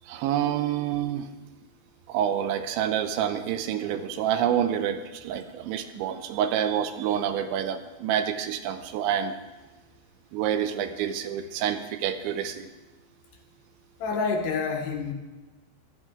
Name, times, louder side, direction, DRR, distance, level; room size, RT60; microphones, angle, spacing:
voice 1, 0.1-1.3 2.1-9.4 10.3-12.7, right 9 dB, 80° right, 9 dB, 2.9 m, -28 dB
voice 2, 14.0-15.1, left 4 dB, 70° left, 2 dB, 2.9 m, -28 dB
16.0 x 12.5 x 3.7 m, 1.2 s
omnidirectional pair, 5.4 m